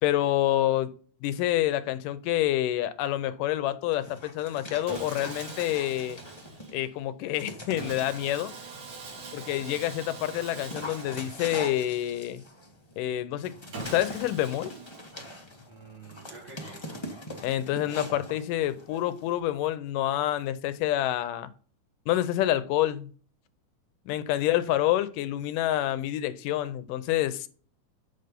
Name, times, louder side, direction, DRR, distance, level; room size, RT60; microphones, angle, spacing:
voice 1, 0.0-0.9 1.2-6.2 6.7-8.5 9.3-12.4 13.0-14.7 17.4-21.5 22.1-23.1 24.1-27.5, left 13 dB, 80° left, 2.3 m, -27 dB
Dog, 3.9-6.8 7.4-8.4 9.0-19.4, left 1 dB, 35° left, 0.4 m, -43 dB
Sawing, 4.9-6.9 7.8-12.3 13.7-15.5, right 4 dB, 60° right, 3.3 m, -43 dB
voice 2, 9.1-9.6 15.7-17.1 24.3-24.9, right 4 dB, 80° right, 5.5 m, -50 dB
8.2 x 6.8 x 5.3 m
omnidirectional pair, 3.8 m